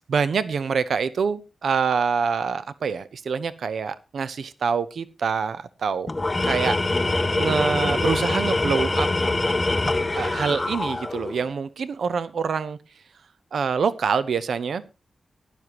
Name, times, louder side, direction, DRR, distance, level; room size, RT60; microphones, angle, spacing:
voice 1, 0.1-6.1 6.4-6.8 7.4-9.1 10.2-12.8 13.5-14.8, right 6 dB, 70° right, 14 dB, 0.7 m, -25 dB
Tools, 6.1-11.4, left 2 dB, 20° left, 0.6 m, -24 dB
17.0 x 11.0 x 3.0 m, 0.28 s
wide cardioid pair, 160°, 0 cm